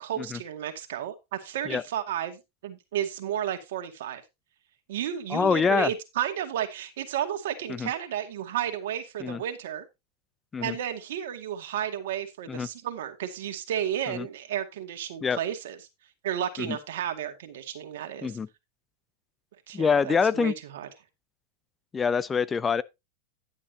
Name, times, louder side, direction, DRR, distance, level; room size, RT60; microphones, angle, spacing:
voice 1, 0.0-4.2 4.9-9.8 10.6-15.8 16.2-18.3 19.7-20.9, right 10 dB, 70° right, 2.1 m, -32 dB
voice 2, 5.3-5.9 7.7-7.9 9.2-9.4 10.5-10.8 12.5-12.7 14.1-14.3 15.2-15.4 16.6-16.8 18.2-18.5 19.7-20.5 21.9-22.8, left 6 dB, 20° left, 0.5 m, -25 dB
11.0 x 9.8 x 2.8 m
hypercardioid pair, 110°, 0 cm